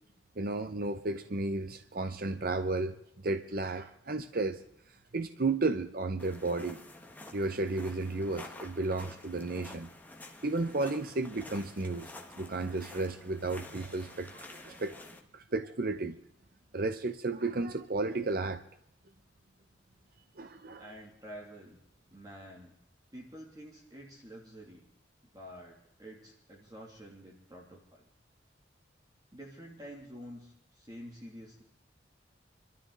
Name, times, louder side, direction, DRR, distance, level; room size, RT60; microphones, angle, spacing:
voice 1, 0.4-3.0 3.2-4.6 5.1-6.8 7.3-9.9 10.4-12.1 12.4-14.9 15.3-16.2 16.7-18.6 20.4-20.9, right 3 dB, 50° right, 8 dB, 0.7 m, -33 dB
sound 1, 6.2-15.2, left 2 dB, 10° left, 1.5 m, -49 dB
voice 2, 20.8-21.8 22.1-22.8 23.1-24.8 25.3-28.0 29.3-31.6, equal, 20° right, -2 dB, 2.6 m, -48 dB
27.0 x 13.0 x 4.0 m, 0.72 s
head